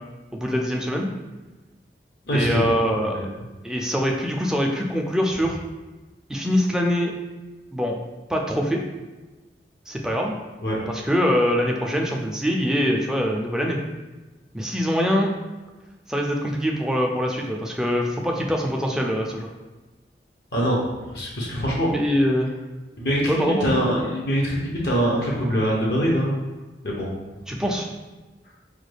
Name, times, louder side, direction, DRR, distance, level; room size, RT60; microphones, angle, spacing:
voice 1, 0.3-1.1 2.3-3.3 3.6-5.6 6.3-7.1 7.7-8.0 8.3-8.8 9.9-10.4 10.9-13.8 14.5-15.3 16.1-19.5 21.9-22.5 23.3-23.7 27.5-27.9, equal, 5° right, 0 dB, 0.3 m, -23 dB
voice 2, 2.3-2.7 3.0-3.3 10.6-10.8 20.5-20.8 21.1-21.9 23.0-26.3 26.8-27.1 27.5-27.6, equal, 70° left, -3 dB, 0.8 m, -23 dB
4.8 x 2.2 x 3.2 m, 1.2 s
head